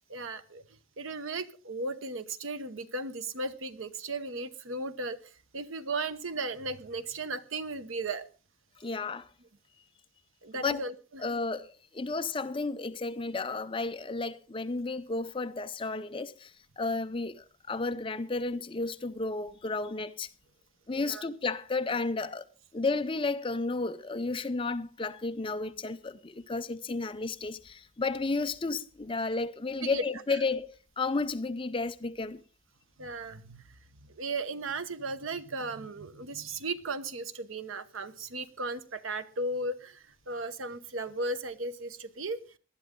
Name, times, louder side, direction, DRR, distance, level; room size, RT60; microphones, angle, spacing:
voice 1, 0.1-0.6 1.0-5.2 5.5-8.3 10.4-11.2 20.9-21.2 29.8-30.0 33.0-33.8 34.1-42.4, right 2 dB, 90° right, 1.0 m, -36 dB
voice 2, 8.8-9.3 10.5-10.8 11.2-20.3 20.9-22.5 22.7-32.4, left 3 dB, 25° left, 0.6 m, -32 dB
19.5 x 11.5 x 3.7 m
head